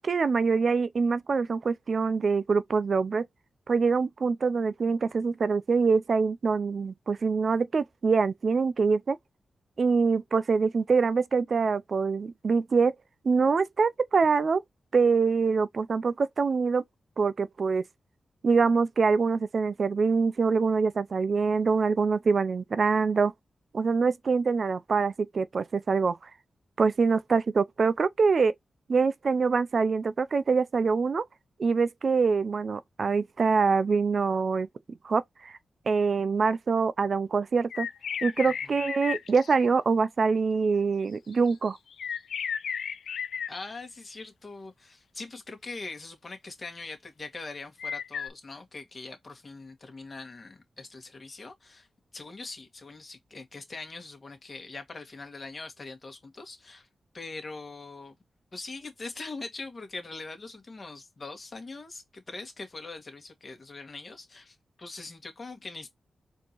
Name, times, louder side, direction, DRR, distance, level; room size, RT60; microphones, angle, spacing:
voice 1, 0.0-3.2 3.7-9.2 9.8-12.9 13.2-14.6 14.9-16.8 17.2-17.8 18.4-23.3 23.7-26.2 26.8-28.5 28.9-31.2 31.6-34.7 35.0-35.5 35.9-37.9 38.2-41.8, right 5 dB, 60° right, 0.4 m, -25 dB
sound 1, 37.7-39.5 41.3-43.5 47.8-48.3, left 7 dB, 85° left, 0.3 m, -34 dB
voice 2, 38.4-38.7 43.5-51.9 52.1-56.9 57.1-58.2 58.5-65.9, left 3 dB, 45° left, 1.8 m, -42 dB
4.4 x 2.9 x 2.9 m
cardioid pair, 65°, 0 cm